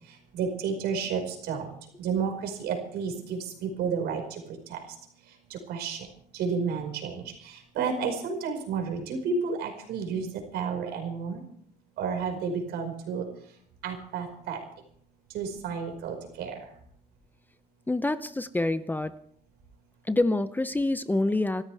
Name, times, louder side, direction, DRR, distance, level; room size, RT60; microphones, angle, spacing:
voice 1, 0.3-1.7 2.0-4.2 4.7-4.8 5.5-6.1 6.3-10.3 10.5-11.4 12.0-13.2 13.8-14.6 15.3-16.5, right 5 dB, 80° right, 3 dB, 5.4 m, -31 dB
voice 2, 17.9-19.1 20.1-21.6, left 2 dB, 10° left, 12 dB, 0.8 m, -26 dB
26.5 x 14.0 x 3.5 m, 0.63 s
cardioid pair, 110°, 17 cm